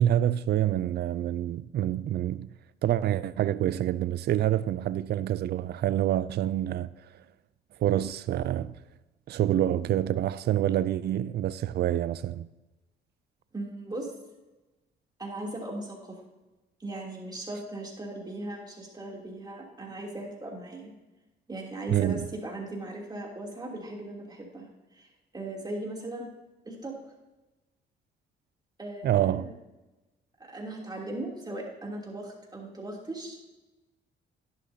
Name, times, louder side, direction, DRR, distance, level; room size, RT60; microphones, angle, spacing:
voice 1, 0.0-2.5 2.8-6.9 7.8-8.8 9.3-12.5 21.9-22.3 29.0-29.5, right 12 dB, 55° right, 0.4 m, -27 dB
voice 2, 13.5-14.1 15.2-16.2 16.8-20.9 21.5-25.1 25.3-26.3 26.6-26.9 28.8-29.5 30.5-33.4, right 1 dB, 20° right, 2.9 m, -38 dB
11.5 x 11.0 x 2.8 m
cardioid pair, 90°, 20 cm